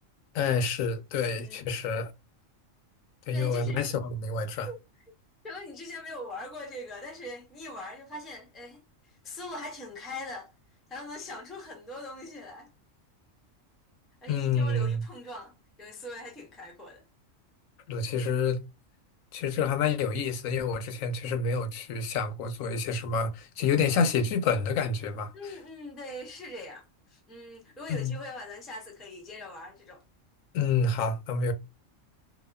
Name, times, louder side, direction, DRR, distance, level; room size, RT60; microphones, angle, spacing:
voice 1, 0.3-2.1 3.3-4.7 14.3-15.0 17.9-18.7 19.3-25.3 27.9-28.2 30.5-31.5, left 4 dB, 85° left, 1.0 m, -28 dB
voice 2, 1.3-1.6 3.3-3.9 4.5-4.8 5.4-10.5 10.9-12.7 14.2-17.0 25.3-30.0, left 1 dB, ahead, 0.3 m, -42 dB
2.8 x 2.2 x 2.2 m
omnidirectional pair, 1.3 m